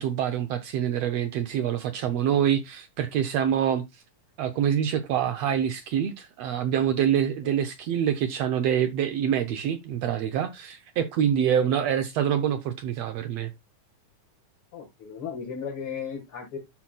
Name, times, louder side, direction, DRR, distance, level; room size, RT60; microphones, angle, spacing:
voice 1, 0.0-3.8 4.4-13.5, right 9 dB, 80° right, 1.5 m, -26 dB
voice 2, 14.7-16.6, left 6 dB, 50° left, 2.0 m, -36 dB
13.0 x 6.0 x 2.3 m
omnidirectional pair, 3.8 m